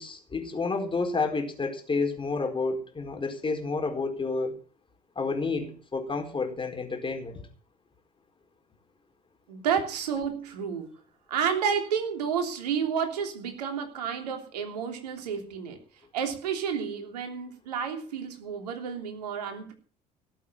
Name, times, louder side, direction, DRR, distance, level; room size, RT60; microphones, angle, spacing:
voice 1, 0.0-4.6 5.2-7.4, left 4 dB, 25° left, 4.5 m, -30 dB
voice 2, 9.5-11.0 11.3-15.8 16.1-19.7, right 7 dB, 80° right, 3.2 m, -30 dB
17.5 x 8.4 x 7.5 m
hypercardioid pair, 60°, 20 cm